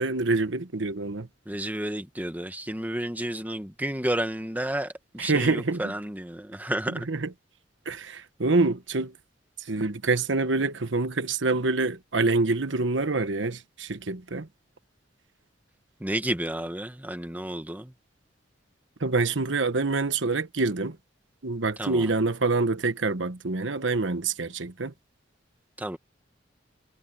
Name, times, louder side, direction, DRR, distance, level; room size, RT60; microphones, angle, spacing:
voice 1, 0.0-1.3 5.2-5.9 6.9-7.3 7.8-9.1 9.7-14.5 19.0-21.0 21.4-24.9, right 3 dB, 75° right, 1.2 m, -26 dB
voice 2, 1.4-7.1 16.0-17.9 21.8-22.1 25.8-26.0, right 1 dB, 10° right, 1.4 m, -31 dB
head